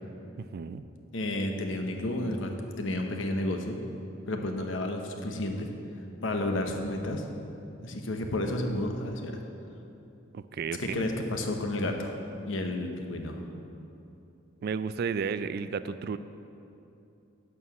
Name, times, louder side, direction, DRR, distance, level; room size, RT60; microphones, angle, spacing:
voice 1, 0.5-0.8 10.3-11.0 14.6-16.2, right 6 dB, 50° right, 13 dB, 0.3 m, -32 dB
voice 2, 1.1-3.8 4.3-5.7 6.2-7.2 7.8-9.4 10.8-12.2 12.4-13.4, left 1 dB, 70° left, 3 dB, 1.0 m, -31 dB
11.0 x 4.8 x 7.1 m, 2.8 s
head